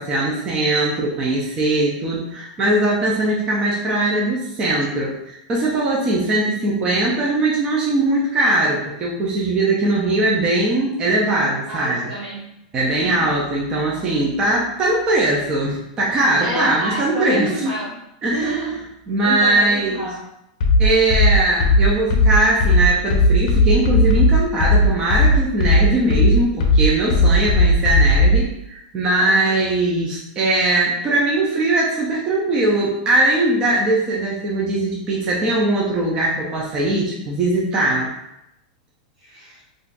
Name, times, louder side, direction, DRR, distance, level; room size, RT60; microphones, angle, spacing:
voice 1, 0.0-12.1 12.7-17.5 18.2-18.6 19.1-20.1 20.8-38.1, right 2 dB, 20° right, -4 dB, 0.4 m, -20 dB
voice 2, 11.7-12.5 12.8-13.2 16.4-17.9 18.3-18.8 19.2-20.2 29.2-29.6 39.2-39.6, right 1 dB, 35° right, -8 dB, 0.8 m, -28 dB
sound 1, 20.6-28.4, left 1 dB, 60° left, 0.5 m, -15 dB
2.5 x 2.2 x 3.8 m, 0.83 s
supercardioid pair, 165°, 4 cm